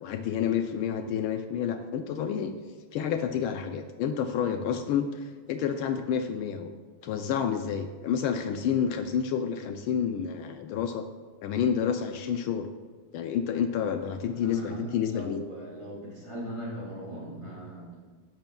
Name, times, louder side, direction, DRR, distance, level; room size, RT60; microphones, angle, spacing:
voice 1, 0.0-2.5 2.9-6.7 7.0-11.1 11.4-12.7 13.1-15.4, left 8 dB, 75° left, 7 dB, 1.4 m, -29 dB
voice 2, 14.2-18.0, right 1 dB, 20° right, -6 dB, 3.3 m, -39 dB
13.0 x 10.5 x 2.3 m, 1.5 s
omnidirectional pair, 2.4 m